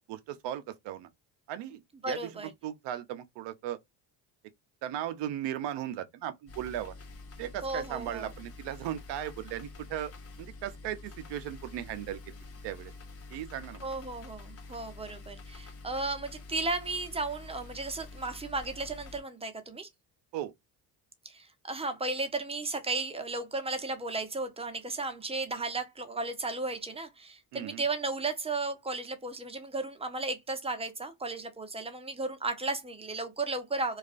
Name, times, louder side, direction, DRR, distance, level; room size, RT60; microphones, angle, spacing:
voice 1, 0.1-1.1 1.5-3.8 4.8-6.9 7.4-10.1 10.4-12.4 12.6-12.9 13.3-13.9 20.3-20.5 27.5-27.8, right 11 dB, 60° right, 0.6 m, -37 dB
voice 2, 2.0-2.5 7.6-8.3 13.8-19.9 21.2-34.0, right 3 dB, 15° right, 0.6 m, -34 dB
sound 1, 6.5-19.2, left 3 dB, 30° left, 0.6 m, -47 dB
2.3 x 2.3 x 2.4 m
supercardioid pair, 80°, 47 cm